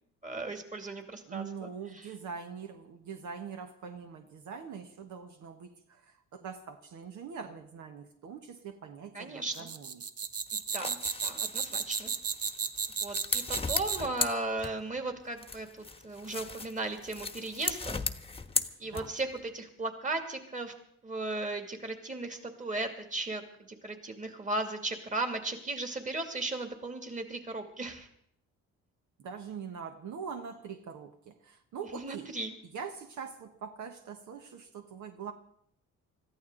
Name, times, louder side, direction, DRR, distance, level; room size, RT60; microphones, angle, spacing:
voice 1, 0.2-1.7 9.1-9.7 10.7-12.1 13.0-18.0 18.8-20.7 21.0-23.4 23.8-28.1 32.0-32.5, right 2 dB, 25° right, 2.6 m, -36 dB
voice 2, 1.2-10.0 18.8-19.2 29.2-32.3 32.7-35.3, right 6 dB, 75° right, 1.3 m, -43 dB
sound 1, 9.5-14.2, right 6 dB, 50° right, 1.2 m, -33 dB
sound 2, 10.5-15.0 15.4-19.4, left 3 dB, 20° left, 1.1 m, -37 dB
21.0 x 14.5 x 3.9 m
cardioid pair, 90°, 30 cm